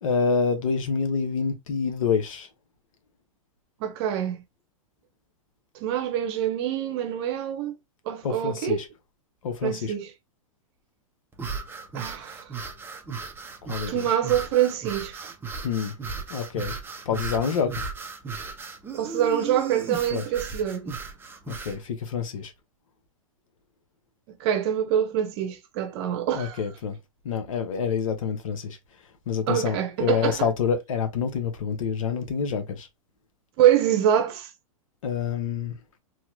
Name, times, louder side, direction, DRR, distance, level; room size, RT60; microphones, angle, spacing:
voice 1, 0.0-2.5 8.2-8.9 9.4-9.9 13.7-14.1 15.6-15.9 16.3-16.8 17.0-17.8 20.1-20.2 21.5-22.5 26.3-27.0 27.2-28.8 29.3-32.9 35.0-35.8, left 6 dB, 70° left, 1.0 m, -27 dB
voice 2, 3.8-4.4 5.8-7.7 8.1-8.8 9.6-10.1 11.9-12.4 13.9-15.3 18.9-20.9 24.4-26.6 29.5-30.4 33.6-34.5, right 10 dB, 50° right, 0.9 m, -25 dB
sound 1, 11.3-21.8, right 4 dB, 10° right, 0.8 m, -36 dB
3.1 x 2.8 x 2.6 m
hypercardioid pair, 110°, 18 cm